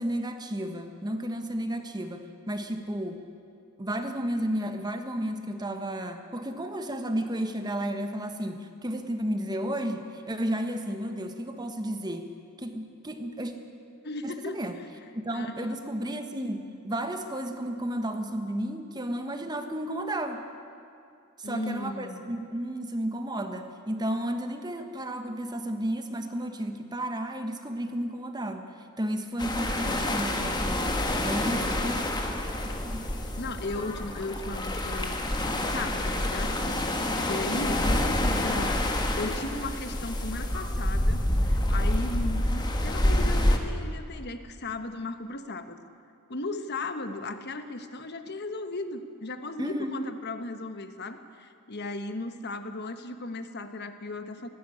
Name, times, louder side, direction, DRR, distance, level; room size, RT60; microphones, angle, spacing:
voice 1, 0.0-3.2 3.8-12.3 12.6-13.5 14.2-14.7 15.1-20.4 21.4-28.7 29.0-32.0 32.5-33.1 49.6-50.0, right 1 dB, 20° right, 6 dB, 1.3 m, -32 dB
voice 2, 14.0-14.9 15.3-15.7 21.4-22.2 31.6-31.8 33.4-35.2 35.6-38.9 39.2-45.8 46.3-54.5, left 2 dB, 50° left, 9 dB, 1.3 m, -36 dB
sound 1, 29.4-43.6, left 1 dB, 20° left, 1.6 m, -27 dB
18.5 x 15.0 x 10.0 m, 2.5 s
head